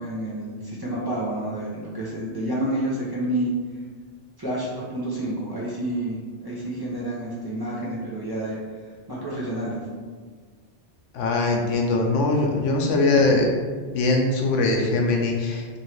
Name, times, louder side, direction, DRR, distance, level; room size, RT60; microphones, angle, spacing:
voice 1, 0.0-3.5 4.4-8.6 8.8-9.8, right 1 dB, 25° right, -7 dB, 0.6 m, -29 dB
voice 2, 11.1-13.5 13.9-15.8, left 2 dB, 90° left, 1 dB, 1.0 m, -21 dB
3.0 x 2.7 x 4.4 m, 1.5 s
omnidirectional pair, 1.2 m